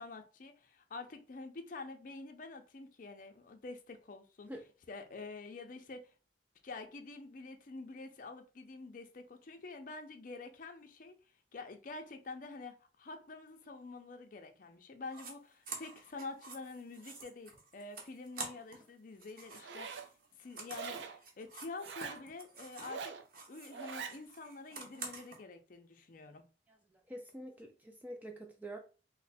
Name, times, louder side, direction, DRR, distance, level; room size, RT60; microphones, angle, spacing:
voice 1, 0.0-4.5 4.9-6.1 6.6-11.2 11.5-20.1 20.4-23.1 23.5-26.4, left 3 dB, 50° left, 0.5 m, -47 dB
sound 1, 15.1-15.3 15.6-18.9 19.1-23.0 23.3-25.4, right 3 dB, 50° right, 0.9 m, -48 dB
Zipper (clothing), 19.5-20.1 20.7-21.2 21.8-22.2 22.8-23.2 23.7-24.2, right 6 dB, 80° right, 0.5 m, -43 dB
voice 2, 26.7-28.8, right 1 dB, 10° right, 0.4 m, -47 dB
3.2 x 2.1 x 4.1 m
head